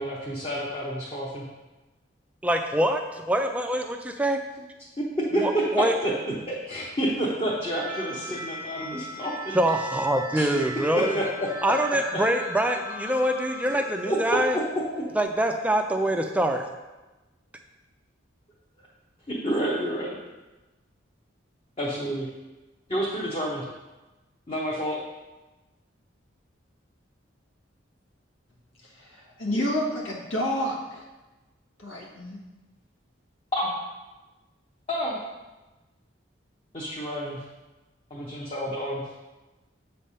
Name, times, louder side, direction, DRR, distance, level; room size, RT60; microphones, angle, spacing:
voice 1, 0.0-1.4 5.0-6.1 6.5-9.5 10.4-10.5 10.9-11.5 12.1-12.2 13.7-13.8 14.1-14.6 15.0-15.1 19.3-20.2 21.8-22.3 22.9-23.6 24.5-25.0 33.5-33.7 34.9-35.2 36.7-37.4 38.1-39.0, right 1 dB, 30° left, -6 dB, 0.9 m, -29 dB
voice 2, 2.4-4.4 5.3-5.9 9.5-11.2 11.6-14.6 15.1-16.7, right 1 dB, 5° right, 5 dB, 0.4 m, -25 dB
sound 1, 7.7-15.2, equal, 45° left, 1.3 m, -39 dB
voice 3, 28.8-31.0 31.8-32.4, equal, 80° left, -1 dB, 1.4 m, -29 dB
7.4 x 3.4 x 5.5 m, 1.1 s
head